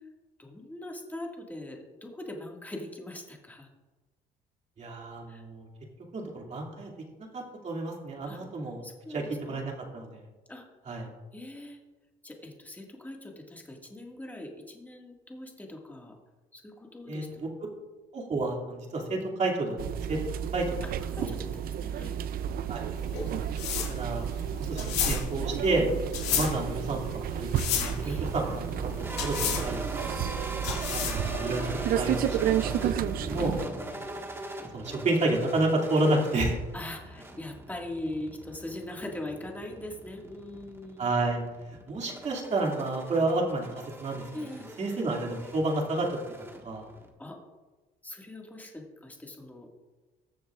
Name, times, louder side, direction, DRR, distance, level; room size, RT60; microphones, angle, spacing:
voice 1, 0.4-3.7 5.3-5.4 8.3-8.4 8.8-9.6 10.5-10.6 11.3-11.8 12.2-16.1 16.5-17.4 21.1-22.2 28.0-28.3 29.5-29.6 33.4-33.6 36.7-41.1 42.8-43.0 44.3-44.7 47.2-47.4 48.0-49.7, left 1 dB, 10° left, 0 dB, 1.9 m, -41 dB
voice 2, 4.8-5.7 6.1-6.9 7.3-8.8 9.1-10.2 10.9-11.1 17.1-17.5 18.1-20.2 20.5-20.8 21.2-21.3 22.7-22.9 23.9-24.2 24.6-25.9 26.3-29.8 30.0-30.3 31.1-31.7 31.9-33.6 34.7-36.6 41.0-41.4 41.9-43.7 44.0-44.2 44.8-46.1 46.6-46.9, right 2 dB, 40° right, 0 dB, 2.4 m, -30 dB
sound 1, 19.8-33.7, right 10 dB, 60° right, 0.5 m, -32 dB
sound 2, 23.0-31.4, left 7 dB, 90° left, 2.0 m, -32 dB
sound 3, 27.9-47.1, right 1 dB, 15° right, 1.6 m, -41 dB
20.0 x 7.1 x 2.5 m, 1.2 s
cardioid pair, 110°, 17 cm